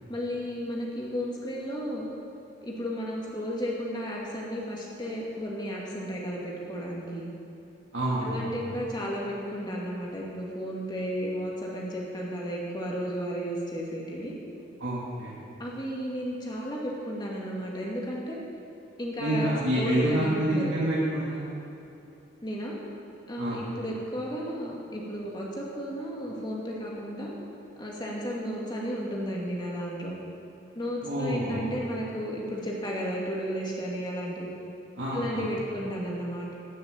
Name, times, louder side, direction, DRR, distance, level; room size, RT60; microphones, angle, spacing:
voice 1, 0.1-2.0 2.6-7.3 8.2-14.3 15.6-18.4 19.0-20.7 22.4-22.8 23.3-27.3 27.8-30.2 30.8-34.5 35.1-36.5, equal, 25° left, -3 dB, 2.3 m, -33 dB
voice 2, 7.9-8.6 14.8-15.3 19.2-21.5 23.4-23.6 31.0-31.7 35.0-35.5, right 1 dB, 75° right, -9 dB, 2.4 m, -28 dB
13.5 x 6.9 x 8.4 m, 2.9 s
head